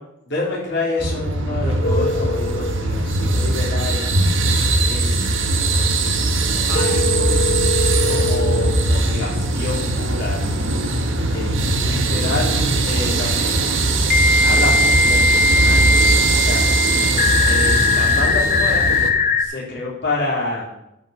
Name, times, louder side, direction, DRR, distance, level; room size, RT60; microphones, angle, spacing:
voice 1, 0.3-4.0 4.8-5.5 6.0-10.4 11.3-13.8 14.4-16.6 16.9-18.8 19.4-20.6, left 2 dB, 60° left, -5 dB, 3.8 m, -28 dB
sound 1, 1.0-19.1, right 2 dB, 80° right, 1.3 m, -20 dB
sound 2, 1.8-2.7 6.7-8.7 11.3-11.4 14.1-19.5, left 3 dB, 40° left, 0.8 m, -19 dB
11.5 x 5.6 x 6.0 m, 0.84 s
head